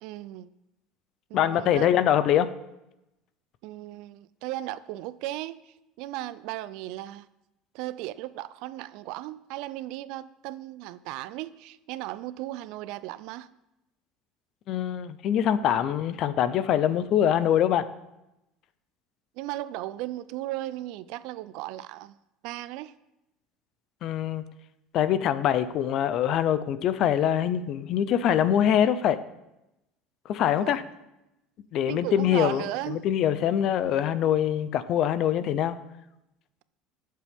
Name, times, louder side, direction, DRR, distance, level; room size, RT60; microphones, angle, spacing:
voice 1, 0.0-0.5 1.3-1.9 3.6-7.3 7.7-13.5 19.4-22.2 22.4-22.9 30.6-30.8 31.9-33.0, right 15 dB, 60° right, 0.4 m, -36 dB
voice 2, 1.3-2.5 14.7-17.9 24.0-24.4 24.9-29.2 30.3-30.8 31.7-35.8, left 10 dB, 40° left, 0.6 m, -24 dB
21.0 x 7.5 x 3.6 m
cardioid pair, 180°, 0 cm